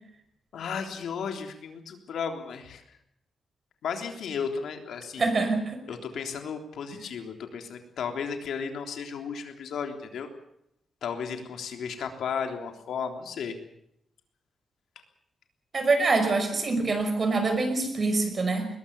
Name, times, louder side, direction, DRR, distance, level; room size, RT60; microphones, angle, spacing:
voice 1, 0.5-2.8 3.8-5.3 5.9-10.3 11.0-13.6, left 6 dB, 90° left, 5 dB, 3.5 m, -34 dB
voice 2, 5.2-5.8 15.7-18.7, right 3 dB, 35° right, 8 dB, 5.5 m, -25 dB
21.0 x 21.0 x 7.0 m, 0.76 s
wide cardioid pair, 135°, 0 cm